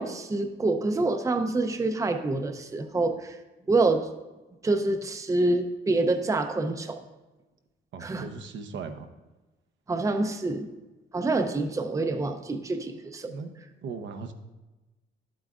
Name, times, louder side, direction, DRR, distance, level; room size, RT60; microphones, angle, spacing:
voice 1, 0.0-3.4 3.7-4.1 4.6-7.0 8.0-8.3 9.9-10.7 11.1-13.3, right 2 dB, 15° right, 6 dB, 0.6 m, -26 dB
voice 2, 7.9-9.1 13.3-13.5 13.8-14.3, right 5 dB, 70° right, 6 dB, 0.8 m, -38 dB
11.5 x 7.8 x 2.4 m, 1.1 s
cardioid pair, 90°, 20 cm